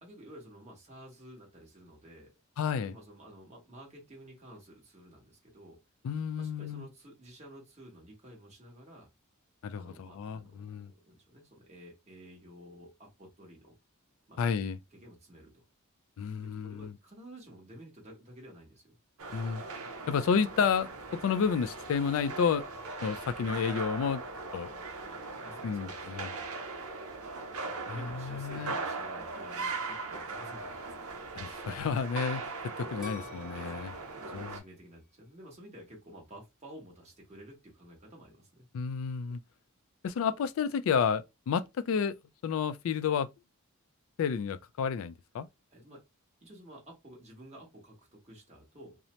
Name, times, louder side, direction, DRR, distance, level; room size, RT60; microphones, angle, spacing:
voice 1, 0.0-2.3 2.7-5.8 6.4-9.1 9.7-13.7 14.3-14.4 14.9-15.6 16.4-19.0 25.1-26.5 27.6-31.1 33.5-38.7 45.7-46.0 46.4-49.0, right 1 dB, 30° right, 1.1 m, -52 dB
voice 2, 2.6-2.9 6.0-6.9 9.6-10.9 14.4-14.8 16.2-16.9 19.3-19.6 20.1-22.7 23.0-24.2 24.5-24.7 25.6-26.3 27.9-28.7 31.4-33.9 34.3-34.5 38.7-39.4 40.0-42.1 42.4-43.3 44.2-45.5, left 6 dB, 65° left, 0.3 m, -31 dB
sound 1, 19.2-34.6, right 3 dB, 75° right, 0.6 m, -40 dB
sound 2, 33.0-35.9 36.4-36.9, left 5 dB, ahead, 1.0 m, -49 dB
2.7 x 2.0 x 3.0 m
head